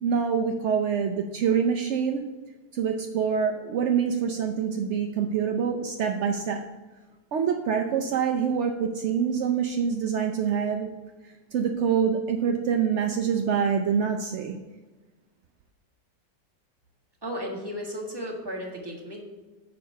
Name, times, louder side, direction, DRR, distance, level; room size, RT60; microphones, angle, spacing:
voice 1, 0.0-2.2 2.7-6.6 7.3-10.9 11.2-14.6, right 7 dB, 70° right, 3 dB, 0.7 m, -25 dB
voice 2, 17.2-19.2, equal, 15° right, -2 dB, 1.6 m, -34 dB
6.9 x 5.2 x 6.6 m, 1.2 s
omnidirectional pair, 1.9 m